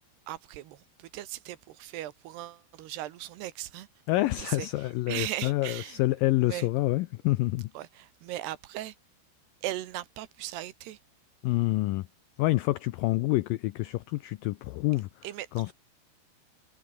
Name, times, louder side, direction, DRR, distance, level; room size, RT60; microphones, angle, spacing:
voice 1, 0.3-3.9 4.4-6.0 6.4-6.7 7.7-9.0 9.6-11.0 15.2-15.7, right 14 dB, 80° right, 3.3 m, -38 dB
voice 2, 4.1-7.7 11.4-12.1 12.4-15.1 15.6-15.7, left 18 dB, 85° left, 1.9 m, -27 dB
omnidirectional pair, 4.8 m